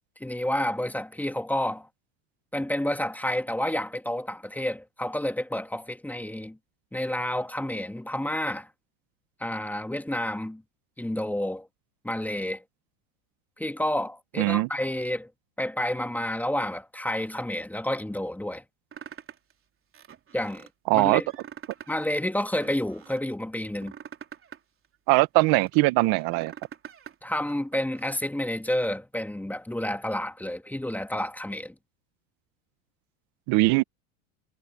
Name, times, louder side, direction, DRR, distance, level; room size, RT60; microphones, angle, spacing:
voice 1, 0.2-1.9 2.5-6.6 6.9-8.7 9.4-10.6 11.0-11.7 12.0-12.6 13.6-15.3 15.6-18.6 20.3-20.7 20.9-21.3 21.9-23.9 27.2-31.7, left 1 dB, 5° left, 2.0 m, -30 dB
voice 2, 14.4-14.7 20.9-21.2 25.1-26.5 33.5-33.8, right 22 dB, 55° right, 1.6 m, -21 dB
sound 1, 18.9-19.5 19.9-20.7 21.2-22.0 22.3-23.2 23.7-25.8 26.2-27.2 27.5-28.2, right 8 dB, 30° right, 3.8 m, -45 dB
supercardioid pair, 110°, 42 cm